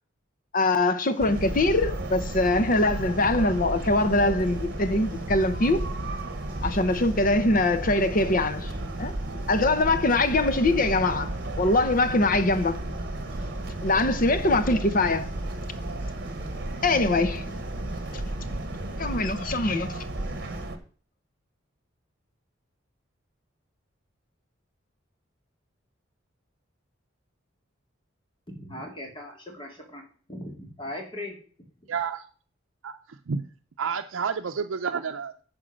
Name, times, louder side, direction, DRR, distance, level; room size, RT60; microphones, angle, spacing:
voice 1, 0.5-5.9 6.6-8.7 9.0-9.1 9.5-12.8 13.8-15.3 16.8-17.6 18.1-18.2 19.0-20.0, left 2 dB, 45° left, 0.8 m, -23 dB
sound 1, 1.0-20.6, right 1 dB, 10° right, 2.8 m, -51 dB
sound 2, 1.2-20.8, right 1 dB, 55° right, 1.1 m, -33 dB
voice 2, 28.5-30.0 30.3-31.3, left 1 dB, 25° left, 2.4 m, -38 dB
voice 3, 31.9-32.3 32.8-33.5 33.8-35.4, right 6 dB, 85° right, 0.5 m, -30 dB
10.0 x 4.7 x 6.3 m
head